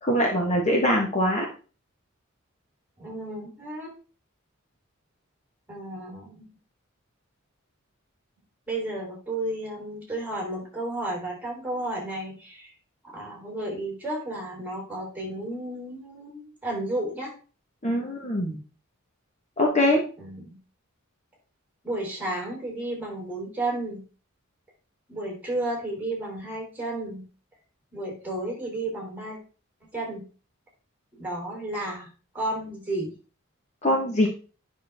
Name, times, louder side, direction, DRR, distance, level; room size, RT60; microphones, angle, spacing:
voice 1, 0.0-1.5 17.8-18.6 19.6-20.0 33.8-34.3, left 1 dB, 35° left, 0 dB, 1.4 m, -23 dB
voice 2, 3.0-3.9 5.7-6.5 8.7-12.7 13.0-17.3 20.2-20.6 21.8-24.0 25.1-27.3 27.9-29.4 29.9-30.2 31.2-32.1 32.3-33.1, right 1 dB, 10° right, -2 dB, 3.8 m, -32 dB
9.5 x 6.2 x 3.6 m, 0.36 s
head